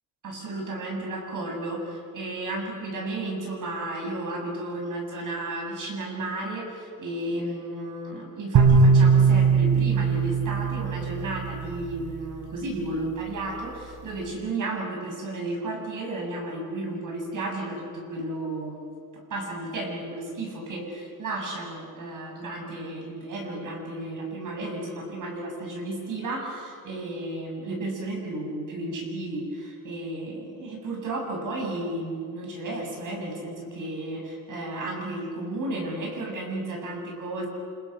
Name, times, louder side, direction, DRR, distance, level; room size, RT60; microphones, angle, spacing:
voice 1, 0.2-18.9 19.3-37.5, right 2 dB, 60° right, 0 dB, 7.7 m, -33 dB
sound 1, 8.5-11.8, right 5 dB, 90° right, 6.8 m, -20 dB
29.5 x 28.5 x 6.2 m, 2.3 s
wide cardioid pair, 165°, 35 cm